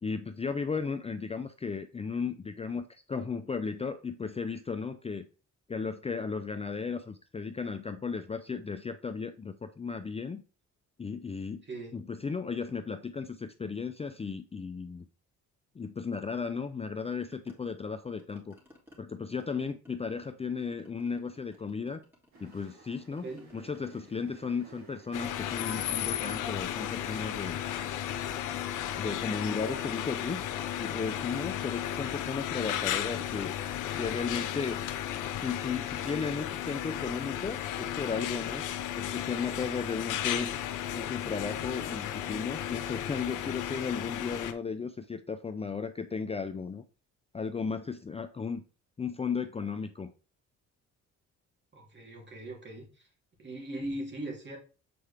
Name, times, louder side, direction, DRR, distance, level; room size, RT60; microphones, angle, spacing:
voice 1, 0.0-5.3 5.7-10.4 11.0-11.6 11.9-15.0 15.8-18.6 19.0-22.0 22.4-27.6 29.0-30.4 30.8-33.6 34.0-34.8 35.4-38.6 39.0-40.5 40.9-46.8 47.3-48.6 49.0-50.1, left 5 dB, 20° left, 0.5 m, -35 dB
sound 1, 17.3-19.0 19.3-20.4 20.7-22.6 22.9-25.3 25.6-35.4, equal, 5° right, 2.8 m, -57 dB
sound 2, 22.3-31.5, right 4 dB, 65° right, 3.0 m, -57 dB
sound 3, 25.1-44.5, left 11 dB, 90° left, 0.8 m, -34 dB
voice 2, 51.7-52.9 53.4-54.6, right 1 dB, 35° right, 3.0 m, -39 dB
7.6 x 4.6 x 3.4 m
cardioid pair, 90°, 30 cm